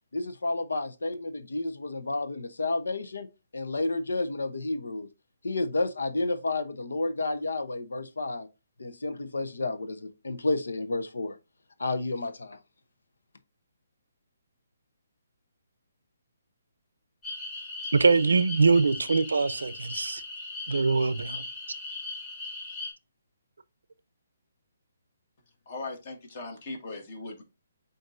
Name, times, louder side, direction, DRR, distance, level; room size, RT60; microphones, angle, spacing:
voice 1, 0.1-3.3 3.5-5.1 5.4-8.5 8.8-11.4 11.8-12.6, left 2 dB, 85° left, 0.7 m, -31 dB
sound 1, 17.2-22.9, left 3 dB, 25° left, 1.8 m, -38 dB
voice 2, 17.9-20.2 20.7-21.4, right 4 dB, 90° right, 0.5 m, -23 dB
voice 3, 25.7-27.4, left 3 dB, 45° left, 1.6 m, -39 dB
7.7 x 2.6 x 2.5 m
hypercardioid pair, 155°, 0 cm